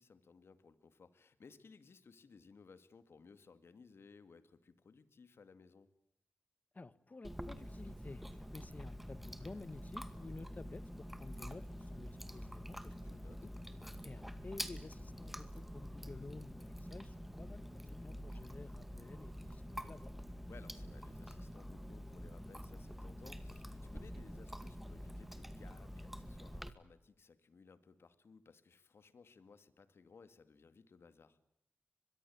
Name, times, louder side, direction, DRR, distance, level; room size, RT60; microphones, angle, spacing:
voice 1, 0.0-5.9 12.9-14.1 20.5-31.4, left 5 dB, 65° left, 13 dB, 2.2 m, -61 dB
voice 2, 6.7-8.2 8.5-13.5 14.0-20.1, left 3 dB, 40° left, 17 dB, 1.5 m, -52 dB
Chewing mastication, 7.2-26.7, equal, 5° right, 2.1 m, -47 dB
24.0 x 22.0 x 8.7 m, 0.79 s
cardioid pair, 50°, 4 cm